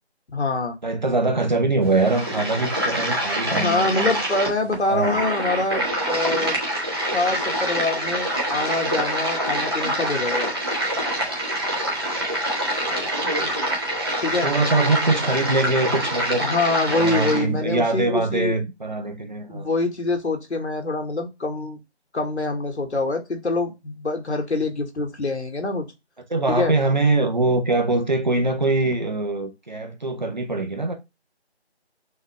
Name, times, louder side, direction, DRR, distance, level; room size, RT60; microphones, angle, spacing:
voice 1, 0.3-0.7 3.5-6.6 7.1-10.5 14.2-14.5 16.4-18.5 19.5-21.8 22.1-25.8 26.5-26.7, left 2 dB, 80° left, 1.5 m, -25 dB
voice 2, 0.8-4.2 4.9-5.2 12.2-13.2 13.4-13.5 14.4-16.4 16.9-19.7 26.3-30.9, right 2 dB, 45° right, 0.9 m, -23 dB
sound 1, 1.8-17.4, right 1 dB, 20° right, 1.1 m, -25 dB
6.3 x 2.5 x 3.2 m
figure-of-eight pair, 170°, 33 cm